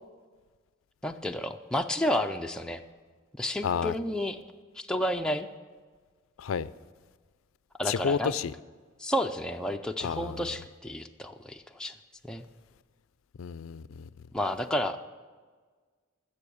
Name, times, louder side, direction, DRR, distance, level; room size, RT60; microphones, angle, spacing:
voice 1, 1.0-2.8 3.4-4.4 4.7-5.5 7.8-8.3 9.0-11.9 12.2-12.4 14.3-15.0, left 1 dB, 5° left, 0.4 m, -31 dB
voice 2, 3.6-3.9 6.4-6.7 7.9-8.5 10.0-10.4 13.4-14.1, left 6 dB, 85° left, 0.4 m, -30 dB
14.5 x 7.0 x 6.9 m
head